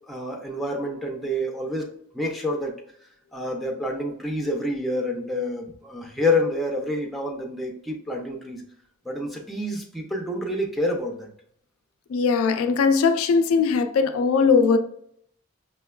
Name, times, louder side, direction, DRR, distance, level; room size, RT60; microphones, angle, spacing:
voice 1, 0.0-1.9 2.1-2.7 3.3-8.6 9.1-11.3, left 1 dB, ahead, 0.4 m, -28 dB
voice 2, 12.1-14.8, left 5 dB, 70° left, 0.3 m, -20 dB
5.6 x 2.2 x 2.2 m
head